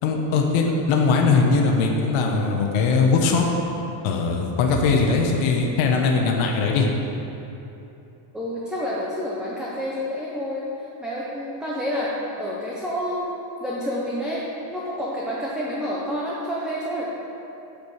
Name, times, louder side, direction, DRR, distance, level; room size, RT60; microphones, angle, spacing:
voice 1, 0.0-3.5 4.0-6.9, left 4 dB, 70° left, 1 dB, 1.2 m, -20 dB
voice 2, 8.3-10.6 11.0-14.4 14.7-17.1, equal, ahead, -6 dB, 0.7 m, -29 dB
7.9 x 5.2 x 6.5 m, 2.9 s
cardioid pair, 155°, 50 cm